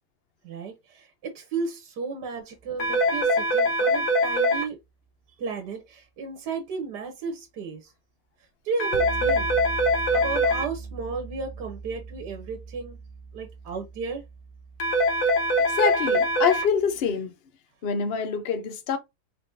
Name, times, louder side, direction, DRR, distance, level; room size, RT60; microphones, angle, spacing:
voice 1, 0.4-4.8 5.4-7.9 8.6-9.5 10.1-13.0 13.3-14.2, right 4 dB, 75° right, 1.5 m, -34 dB
sound 1, 2.6-3.0 8.9-17.0, right 4 dB, 45° right, 1.0 m, -40 dB
sound 2, 2.8-4.6 8.8-10.6 14.8-16.6, equal, 65° left, 1.5 m, -23 dB
voice 2, 15.7-17.3 17.8-19.0, left 6 dB, 50° left, 0.7 m, -26 dB
4.1 x 3.4 x 2.6 m
omnidirectional pair, 1.8 m